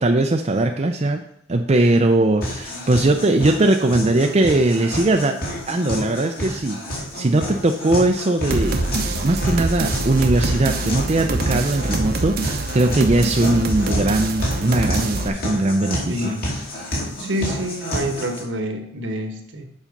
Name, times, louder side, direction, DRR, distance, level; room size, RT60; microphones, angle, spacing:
voice 1, 0.0-1.2 1.5-5.4 5.7-8.8 9.2-16.3, right 2 dB, 35° right, 3 dB, 0.5 m, -20 dB
sound 1, 2.4-18.4, equal, 50° left, 2.6 m, -30 dB
sound 2, 8.5-15.3, right 2 dB, 50° right, 0.8 m, -25 dB
voice 2, 16.0-16.5 16.9-19.6, equal, 65° right, 5 dB, 1.2 m, -28 dB
7.4 x 5.6 x 5.2 m, 0.73 s
head